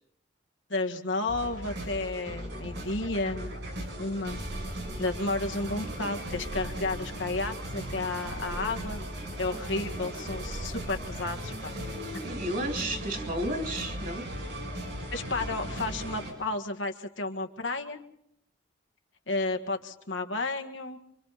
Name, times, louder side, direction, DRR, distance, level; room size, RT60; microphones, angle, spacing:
voice 1, 0.7-3.5 4.0-4.4 5.0-9.0 9.4-11.7 15.1-18.0 19.3-21.0, left 2 dB, 90° left, 5 dB, 1.9 m, -32 dB
sound 1, 1.3-16.3, right 1 dB, 70° right, 7.5 m, -37 dB
voice 2, 12.2-14.3, right 1 dB, 45° right, 4 dB, 2.9 m, -32 dB
28.5 x 25.0 x 4.2 m, 0.76 s
head